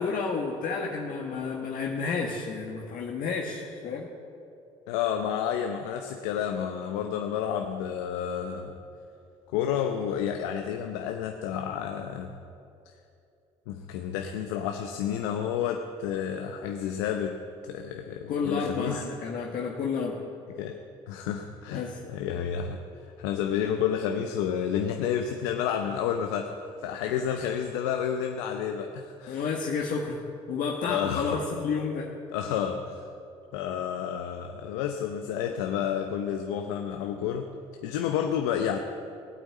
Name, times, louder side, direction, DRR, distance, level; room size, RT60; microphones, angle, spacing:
voice 1, 0.0-4.1 18.3-20.2 21.7-22.0 29.3-30.2 30.5-32.1, left 5 dB, 65° left, -1 dB, 1.5 m, -31 dB
voice 2, 4.9-8.8 9.5-12.3 13.7-19.1 20.6-20.8 21.1-29.4 30.8-31.4 32.3-33.0 33.5-37.5 37.8-38.8, left 8 dB, 85° left, 4 dB, 0.8 m, -30 dB
17.5 x 9.1 x 8.5 m, 2.6 s
hypercardioid pair, 60°, 15 cm